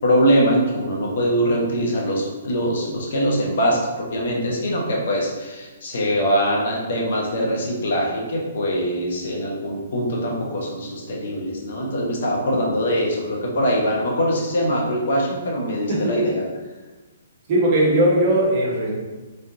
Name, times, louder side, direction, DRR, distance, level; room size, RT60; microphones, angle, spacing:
voice 1, 0.0-16.5, equal, 65° left, -2 dB, 1.1 m, -22 dB
voice 2, 15.9-16.3 17.5-18.9, right 1 dB, 40° right, -4 dB, 1.3 m, -19 dB
3.9 x 3.4 x 2.8 m, 1.2 s
hypercardioid pair, 145°, 0 cm